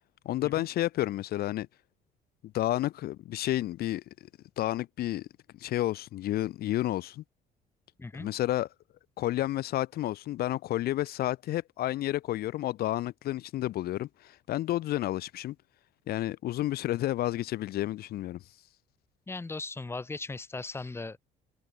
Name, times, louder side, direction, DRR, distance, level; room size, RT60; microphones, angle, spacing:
voice 1, 0.2-1.7 2.5-4.0 4.6-5.3 5.6-7.2 8.1-8.7 9.2-15.5 16.1-18.4, left 14 dB, 65° left, 0.8 m, -30 dB
voice 2, 8.0-8.3 19.3-21.2, left 3 dB, 15° left, 1.0 m, -38 dB
open air
cardioid pair, 110°, 17 cm